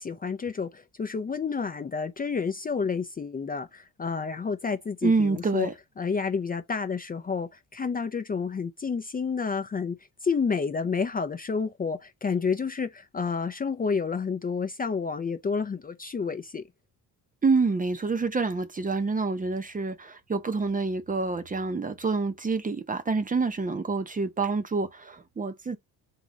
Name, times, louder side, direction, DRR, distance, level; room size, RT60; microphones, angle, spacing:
voice 1, 0.0-5.7 6.0-10.0 10.2-16.6, left 5 dB, 25° left, 0.6 m, -30 dB
voice 2, 5.0-5.7 17.4-25.8, right 4 dB, 20° right, 0.7 m, -27 dB
3.8 x 3.0 x 4.0 m
cardioid pair, 110°, 38 cm